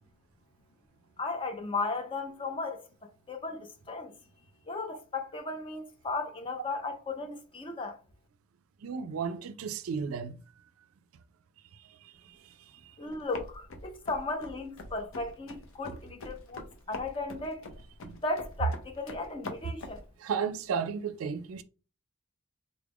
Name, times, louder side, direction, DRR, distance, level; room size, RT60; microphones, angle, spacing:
voice 1, 1.2-2.8 3.3-4.1 4.7-8.0 13.0-17.6 18.2-20.0, left 3 dB, 25° left, 0.5 m, -35 dB
voice 2, 8.8-10.4 11.8-13.0 18.1-18.2 20.2-21.6, right 6 dB, 85° right, 0.4 m, -34 dB
sound 1, 13.1-20.1, left 2 dB, 75° left, 0.7 m, -44 dB
3.9 x 2.4 x 3.4 m
head